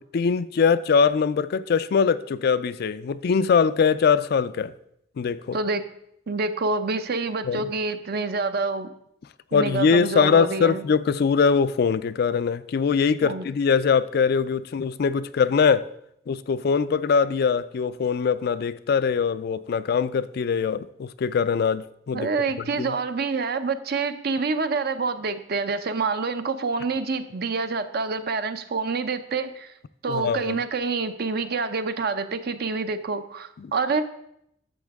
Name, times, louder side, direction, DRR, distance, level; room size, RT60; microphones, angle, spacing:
voice 1, 0.1-4.7 5.2-5.6 7.5-7.7 9.5-15.9 16.3-22.3 22.8-22.9 30.1-30.6 33.6-33.7, left 6 dB, 55° left, 0.4 m, -22 dB
voice 2, 5.5-5.8 6.3-8.9 9.5-10.8 13.2-13.4 22.1-29.7 30.0-34.0, right 4 dB, 60° right, 0.6 m, -27 dB
11.5 x 7.2 x 3.5 m
head